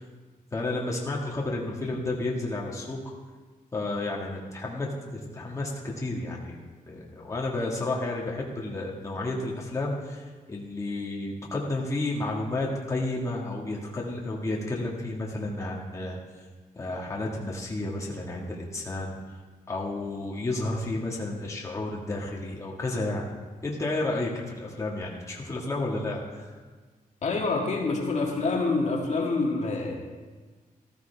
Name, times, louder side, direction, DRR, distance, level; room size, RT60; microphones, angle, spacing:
voice 1, 0.5-3.0 3.7-6.6 6.9-16.2 16.8-19.1 19.7-23.2 23.6-26.5, left 2 dB, 20° left, -3 dB, 1.8 m, -31 dB
voice 2, 27.2-30.0, left 3 dB, 50° left, 0 dB, 1.9 m, -26 dB
14.0 x 14.0 x 3.5 m, 1.4 s
wide cardioid pair, 135°, 15 cm